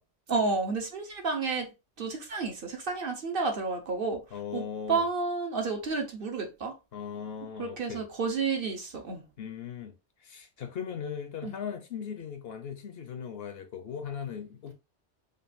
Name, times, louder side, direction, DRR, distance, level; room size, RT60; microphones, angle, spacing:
voice 1, 0.3-4.2 4.5-4.6 4.9-6.7 7.6-9.2 11.4-11.5, right 4 dB, 55° right, 1.0 m, -31 dB
voice 2, 4.3-5.0 6.9-8.1 9.4-14.7, left 7 dB, 60° left, 0.8 m, -38 dB
5.2 x 2.5 x 2.5 m
omnidirectional pair, 1.2 m